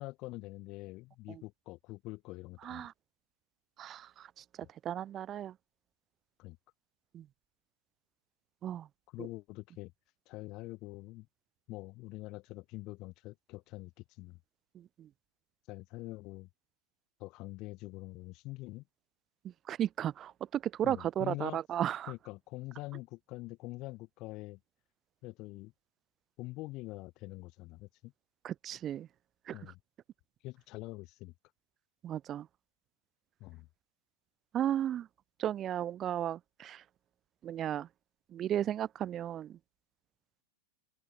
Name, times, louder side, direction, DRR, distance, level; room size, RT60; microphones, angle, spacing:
voice 1, 0.0-2.9 6.4-6.6 9.1-9.9 10.3-11.3 11.7-13.9 14.2-14.4 15.7-16.5 17.2-18.8 20.8-21.6 22.1-24.6 25.2-25.7 26.4-28.1 29.5-29.8 30.4-31.3 33.4-33.7, left 21 dB, 40° left, 1.4 m, -44 dB
voice 2, 2.6-2.9 3.8-5.6 7.1-7.3 8.6-8.9 9.2-9.3 14.7-15.1 19.4-22.1 28.4-29.1 29.5-29.6 32.0-32.5 34.5-35.1 35.4-36.8 37.4-37.9 38.3-39.6, right 11 dB, 30° right, 0.7 m, -35 dB
open air
figure-of-eight pair, 90°, 0 cm